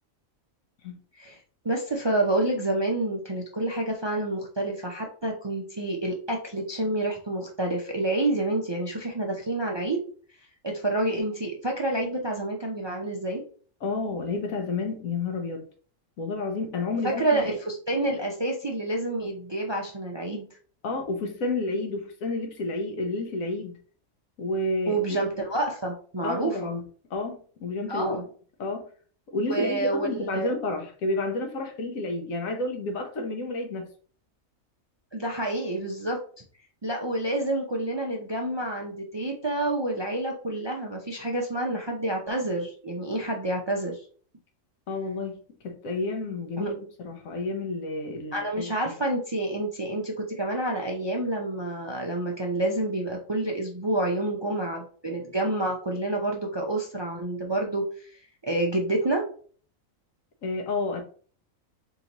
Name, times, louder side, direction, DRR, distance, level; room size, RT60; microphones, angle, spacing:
voice 1, 1.6-10.0 10.6-13.4 17.0-20.5 24.9-26.7 27.9-28.2 29.5-30.5 35.1-36.2 36.8-44.0 46.6-46.7 48.3-57.8 58.4-59.2, right 2 dB, 35° right, 0 dB, 0.4 m, -28 dB
voice 2, 13.8-15.7 16.2-17.5 20.8-23.8 24.4-25.2 26.2-26.8 27.1-28.2 28.6-28.9 29.3-33.9 44.9-48.9 60.4-61.0, left 2 dB, 80° left, 4 dB, 1.3 m, -30 dB
4.0 x 3.7 x 2.9 m, 0.43 s
omnidirectional pair, 1.4 m